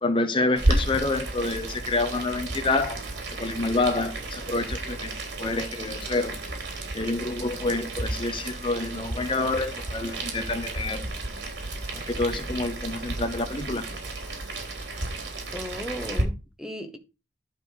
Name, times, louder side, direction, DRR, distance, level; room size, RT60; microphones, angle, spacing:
voice 1, 0.0-3.0 3.4-5.1 5.4-6.4 6.9-11.1 12.1-13.9, left 2 dB, 30° left, 1.0 m, -27 dB
Boiling, 0.6-16.2, right 2 dB, 85° right, 3.6 m, -32 dB
voice 2, 15.5-17.0, equal, 5° right, 1.2 m, -36 dB
11.5 x 4.4 x 6.4 m
head